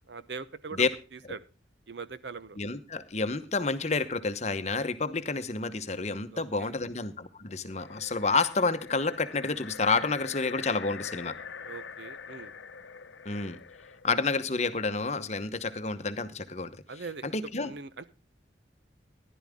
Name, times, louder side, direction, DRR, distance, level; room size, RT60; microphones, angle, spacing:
voice 1, 0.1-1.4 1.9-2.6 6.3-6.8 11.6-12.5 16.9-17.4 17.6-18.1, right 4 dB, 70° right, 15 dB, 0.8 m, -42 dB
voice 2, 2.6-11.3 13.2-13.6 14.0-16.7 17.3-17.7, left 4 dB, 35° left, 11 dB, 0.9 m, -29 dB
sound 1, 7.7-14.1, left 6 dB, 90° left, 0.8 m, -44 dB
14.5 x 11.0 x 3.6 m, 0.32 s
head